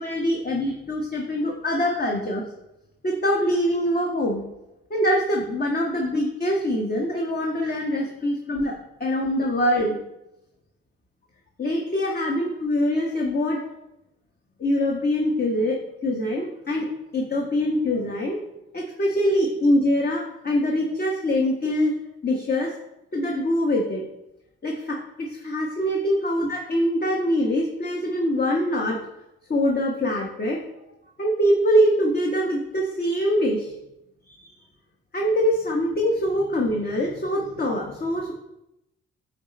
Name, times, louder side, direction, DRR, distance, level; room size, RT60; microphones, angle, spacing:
voice 1, 0.0-2.4 3.0-4.4 4.9-8.7 9.0-10.0 11.6-13.6 14.6-16.9 17.1-18.4 18.7-21.9 22.2-22.7 23.1-24.0 24.6-29.0 29.5-30.6 31.2-33.7 34.2-34.5 35.1-38.3, equal, 30° left, -1 dB, 1.2 m, -24 dB
9.1 x 3.2 x 4.1 m, 0.89 s
figure-of-eight pair, 45°, 31 cm